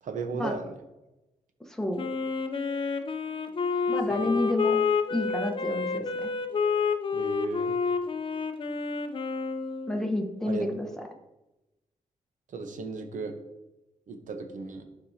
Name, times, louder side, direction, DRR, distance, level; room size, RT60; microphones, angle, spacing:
voice 1, 0.0-0.7 4.2-4.3 7.1-7.7 10.4-10.7 12.5-13.3 14.1-14.9, right 4 dB, 75° right, 6 dB, 1.0 m, -35 dB
voice 2, 1.7-2.0 3.9-4.8 5.1-6.3 9.9-11.0, left 1 dB, 5° left, 1 dB, 1.1 m, -30 dB
Wind instrument woodwind instrument, 2.0-10.1, left 5 dB, 40° left, 0.6 m, -29 dB
11.5 x 4.8 x 2.8 m, 0.99 s
cardioid pair, 105°, 13 cm